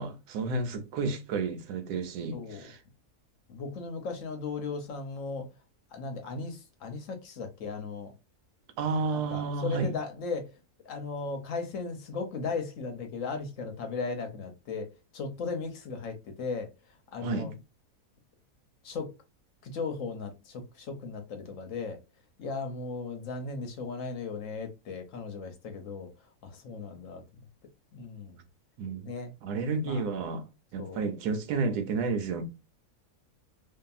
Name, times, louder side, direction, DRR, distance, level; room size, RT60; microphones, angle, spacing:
voice 1, 0.0-2.8 8.8-9.9 17.2-17.5 28.8-29.1 29.4-30.4 30.7-32.4, right 4 dB, 85° right, 1.2 m, -31 dB
voice 2, 2.3-2.7 3.5-5.5 5.9-8.1 9.1-10.5 10.8-16.7 17.1-17.5 18.8-19.1 19.6-22.0 22.4-26.1 26.4-27.2 27.9-28.4 29.0-29.3 29.8-30.1 30.8-31.0, left 4 dB, 65° left, 0.9 m, -36 dB
2.7 x 2.5 x 2.3 m
omnidirectional pair, 1.7 m